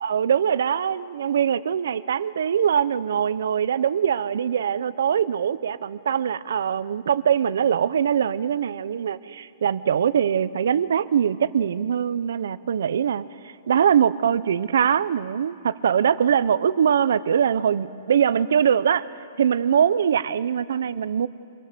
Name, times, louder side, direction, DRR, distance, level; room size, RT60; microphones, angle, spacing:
voice 1, 0.0-13.2 13.7-19.1 19.4-21.3, right 8 dB, 80° right, 16 dB, 0.7 m, -22 dB
25.5 x 21.0 x 6.8 m, 2.6 s
hypercardioid pair, 175°, 0 cm